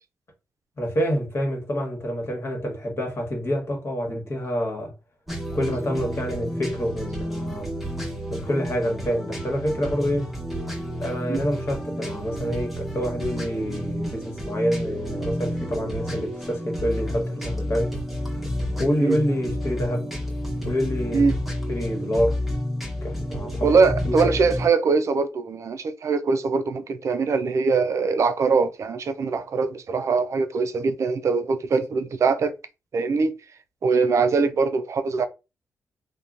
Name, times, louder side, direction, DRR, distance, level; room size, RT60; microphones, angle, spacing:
voice 1, 0.8-4.9 5.5-7.7 8.3-10.3 11.0-18.0 18.3-18.5 18.8-20.1 20.6-21.3 21.7-22.4 23.0-24.3, equal, 45° left, 1.3 m, -27 dB
sound 1, 5.3-24.7, equal, ahead, 1.0 m, -30 dB
voice 2, 23.6-32.5 32.9-33.4 33.8-35.3, right 4 dB, 55° right, 0.4 m, -22 dB
2.8 x 2.2 x 2.4 m
cardioid pair, 80°, 6 cm